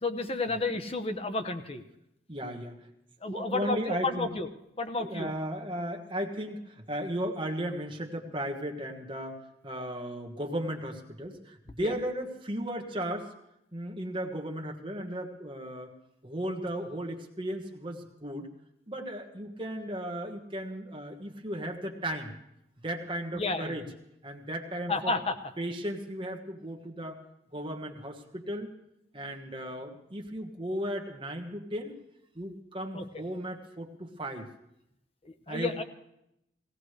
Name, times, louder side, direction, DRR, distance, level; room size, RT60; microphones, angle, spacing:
voice 1, 0.0-1.8 3.2-4.5 4.8-5.3 11.8-11.9 23.3-23.8 24.9-25.4 32.9-33.1 35.2-35.8, left 3 dB, 35° left, 8 dB, 0.9 m, -31 dB
voice 2, 2.3-2.8 3.3-4.3 5.0-13.3 13.7-15.9 16.2-18.5 18.9-22.3 22.8-23.8 24.2-25.1 25.6-27.2 27.5-28.7 29.1-31.9 32.3-34.5 35.5-35.8, equal, 30° right, 2 dB, 1.4 m, -35 dB
17.5 x 17.5 x 3.3 m, 0.81 s
head